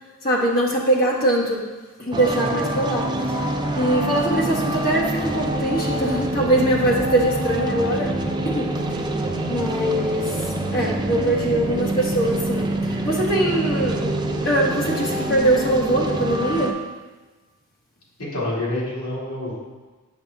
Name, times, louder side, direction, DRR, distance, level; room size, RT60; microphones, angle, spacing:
voice 1, 0.2-1.6 2.0-3.4 3.7-8.1 8.4-8.7 9.5-10.5 10.7-14.1 14.4-16.8, right 1 dB, 40° left, -2 dB, 1.2 m, -22 dB
sound 1, 2.1-16.7, right 1 dB, 20° right, 0.5 m, -26 dB
voice 2, 18.2-19.6, left 1 dB, 80° left, -6 dB, 2.2 m, -27 dB
7.7 x 5.0 x 3.5 m, 1.3 s
head